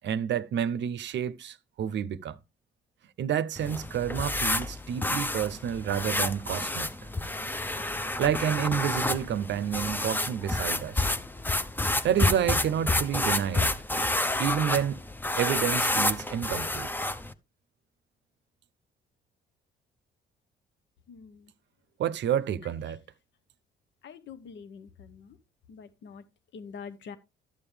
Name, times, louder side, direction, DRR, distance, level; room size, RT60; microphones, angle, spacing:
voice 1, 0.0-2.4 3.2-6.9 8.2-11.1 12.0-13.7 14.4-15.0 15.4-16.9 22.0-23.0, right 9 dB, 65° right, 0.6 m, -29 dB
sound 1, 3.6-17.3, left 2 dB, 10° left, 0.6 m, -29 dB
voice 2, 24.0-24.8 25.8-26.2 26.5-27.2, left 6 dB, 70° left, 0.9 m, -43 dB
12.0 x 7.1 x 3.3 m
cardioid pair, 90°, 20 cm